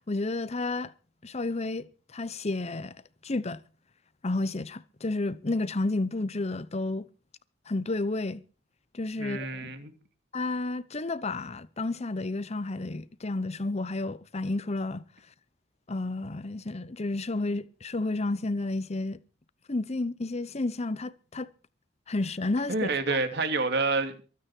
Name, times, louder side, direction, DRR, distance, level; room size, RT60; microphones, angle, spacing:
voice 1, 0.1-0.9 1.2-3.6 4.2-7.1 7.7-8.4 8.9-9.7 10.3-15.0 15.9-19.2 19.7-21.5 22.1-23.2, left 2 dB, 35° left, 0.8 m, -31 dB
voice 2, 9.2-9.9 22.7-24.2, right 3 dB, 60° right, 2.8 m, -28 dB
23.0 x 9.3 x 4.5 m
head